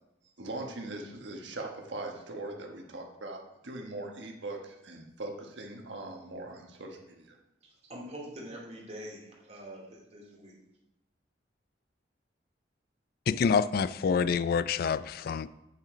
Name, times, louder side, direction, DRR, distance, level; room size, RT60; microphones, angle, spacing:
voice 1, 0.4-7.4, right 2 dB, 85° right, 1.3 m, -41 dB
voice 2, 7.6-10.6, equal, 35° right, 2.3 m, -45 dB
voice 3, 13.3-15.5, left 6 dB, 55° left, 0.3 m, -27 dB
9.3 x 5.9 x 5.0 m
head